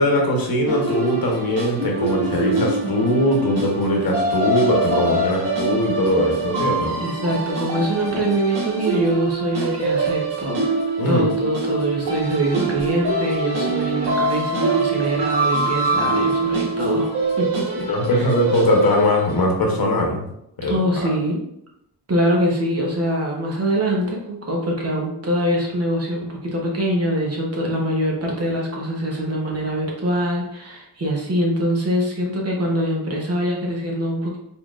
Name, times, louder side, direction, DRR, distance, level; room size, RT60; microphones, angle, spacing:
voice 1, 0.0-7.0 11.0-11.2 17.8-20.3 20.6-21.1, left 1 dB, 55° left, 1 dB, 0.9 m, -20 dB
sound 1, 0.7-19.4, right 3 dB, 70° right, 1.3 m, -24 dB
voice 2, 7.0-10.7 11.1-17.8 18.1-18.3 20.7-21.4 22.1-34.4, right 1 dB, 35° right, -2 dB, 1.0 m, -23 dB
4.2 x 3.6 x 2.4 m, 0.77 s
wide cardioid pair, 140°, 41 cm